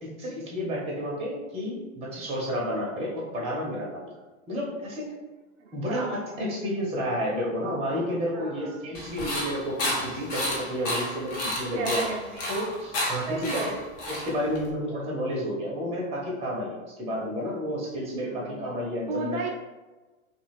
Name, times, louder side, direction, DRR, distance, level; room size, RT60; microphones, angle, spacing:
voice 1, 0.0-4.1 4.5-5.1 5.7-12.0 12.5-13.6 14.1-19.4, equal, 15° right, -4 dB, 0.7 m, -31 dB
voice 2, 5.6-6.1 8.3-8.8 11.7-12.6 13.3-13.8 18.2-18.6 19.1-19.5, right 4 dB, 60° right, 0 dB, 0.6 m, -34 dB
sound 1, 8.9-14.7, left 1 dB, 40° left, 0.9 m, -31 dB
2.4 x 2.3 x 3.4 m, 1.2 s
hypercardioid pair, 105°, 42 cm